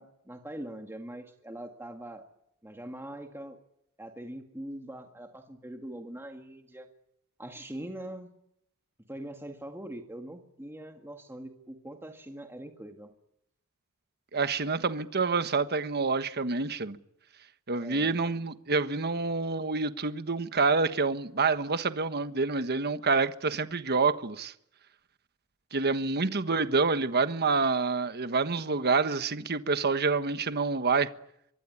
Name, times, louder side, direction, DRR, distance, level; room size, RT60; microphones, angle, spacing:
voice 1, 0.0-2.2 2.6-3.6 4.0-6.9 7.4-8.3 9.1-13.1 17.7-18.1, right 1 dB, 10° right, 2.0 m, -42 dB
voice 2, 14.3-17.0 17.7-24.5 25.7-31.1, right 4 dB, 50° right, 1.3 m, -27 dB
25.0 x 22.0 x 9.9 m
head